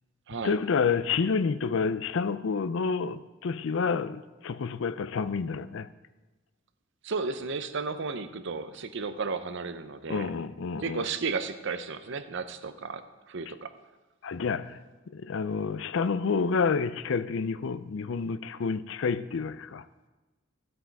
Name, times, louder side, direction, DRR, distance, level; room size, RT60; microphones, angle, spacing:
voice 1, 0.4-5.9 10.1-11.0 14.2-14.8 15.1-19.8, left 5 dB, 65° left, 0.5 m, -29 dB
voice 2, 7.0-10.3 10.8-13.7, right 4 dB, 65° right, 0.7 m, -33 dB
13.5 x 7.8 x 4.7 m
head